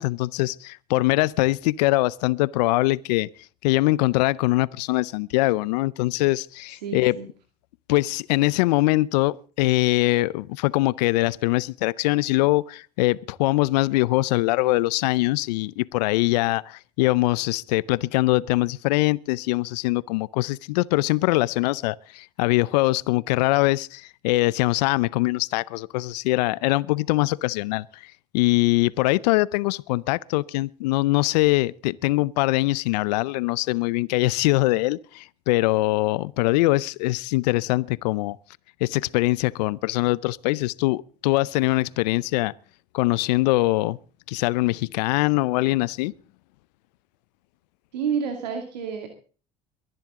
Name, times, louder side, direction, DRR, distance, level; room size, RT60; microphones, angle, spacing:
voice 1, 0.0-3.3 3.6-7.2 7.9-28.1 28.3-38.4 38.8-42.5 42.9-44.0 44.3-46.1, left 20 dB, 80° left, 0.6 m, -22 dB
voice 2, 6.8-7.3 47.9-49.1, right 7 dB, 85° right, 2.3 m, -29 dB
23.0 x 10.5 x 3.7 m
hypercardioid pair, 70°, 21 cm